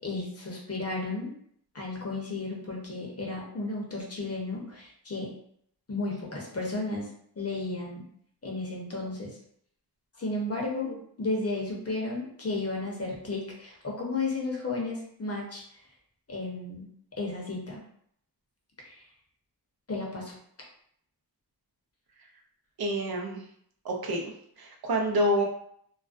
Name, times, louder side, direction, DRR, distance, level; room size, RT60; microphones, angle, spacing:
voice 1, 0.0-1.3 1.7-5.4 5.9-7.1 7.4-8.0 8.4-9.4 10.2-15.6 16.3-16.9 17.2-17.8 18.8-19.1 19.9-20.3, left 2 dB, 40° left, -2 dB, 0.7 m, -33 dB
voice 2, 22.8-23.4 23.8-24.2 24.6-25.4, equal, 65° right, 0 dB, 0.6 m, -27 dB
2.4 x 2.1 x 2.4 m, 0.68 s
wide cardioid pair, 60°, 39 cm